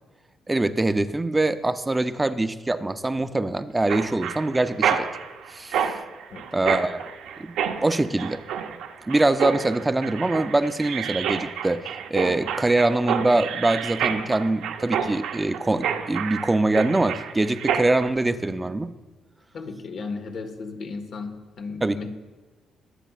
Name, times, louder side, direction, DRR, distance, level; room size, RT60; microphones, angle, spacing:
voice 1, 0.5-5.1 5.5-5.9 6.5-7.0 7.4-7.5 7.8-8.4 9.1-18.9 21.8-22.0, right 2 dB, 15° right, 11 dB, 0.6 m, -23 dB
Mechanisms, 3.9-18.1, right 8 dB, 85° right, 0.7 m, -29 dB
voice 2, 19.5-22.1, left 4 dB, 60° left, 5 dB, 1.5 m, -35 dB
22.5 x 8.0 x 2.5 m, 1.3 s
cardioid pair, 90°, 0 cm